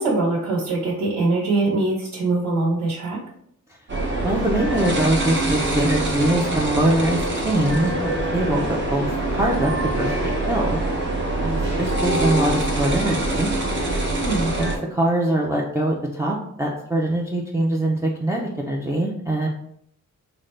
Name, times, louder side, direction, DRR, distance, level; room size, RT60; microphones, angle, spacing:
voice 1, 0.0-3.2 14.1-14.5, right 2 dB, 70° right, -6 dB, 1.1 m, -22 dB
sound 1, 3.9-14.8, right 2 dB, 40° right, 0.8 m, -24 dB
voice 2, 4.2-10.8 11.4-13.5 14.6-19.5, right 1 dB, 10° right, -2 dB, 0.4 m, -23 dB
3.8 x 2.1 x 3.2 m, 0.68 s
wide cardioid pair, 130°, 30 cm